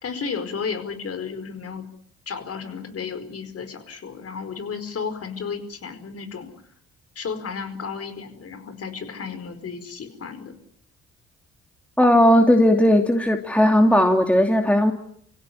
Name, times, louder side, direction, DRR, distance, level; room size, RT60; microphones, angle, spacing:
voice 1, 0.0-1.8 2.3-6.5 7.1-10.6, left 5 dB, 55° left, 9 dB, 4.9 m, -33 dB
voice 2, 12.0-14.9, left 1 dB, 5° left, 4 dB, 2.7 m, -17 dB
26.0 x 16.5 x 9.9 m, 0.72 s
supercardioid pair, 60°, 29 cm